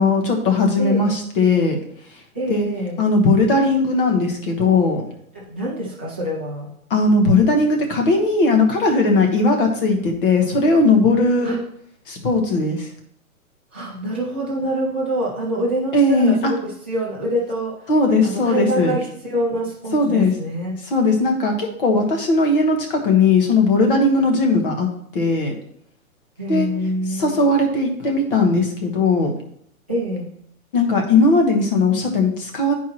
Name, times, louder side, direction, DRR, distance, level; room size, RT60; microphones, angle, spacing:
voice 1, 0.0-1.8 2.5-2.7 3.0-5.0 6.9-11.5 12.1-12.9 15.9-16.5 17.9-19.0 19.9-20.3 20.9-24.9 25.1-25.5 26.5-26.7 27.1-29.3 30.7-32.7, left 3 dB, 40° left, 3 dB, 1.2 m, -18 dB
voice 2, 0.8-1.1 2.3-3.0 5.3-6.7 11.4-11.6 13.7-17.9 18.2-20.8 26.4-27.5 29.9-30.3, equal, 10° right, -8 dB, 0.4 m, -26 dB
10.0 x 4.7 x 2.9 m, 0.70 s
hypercardioid pair, 165°, 43 cm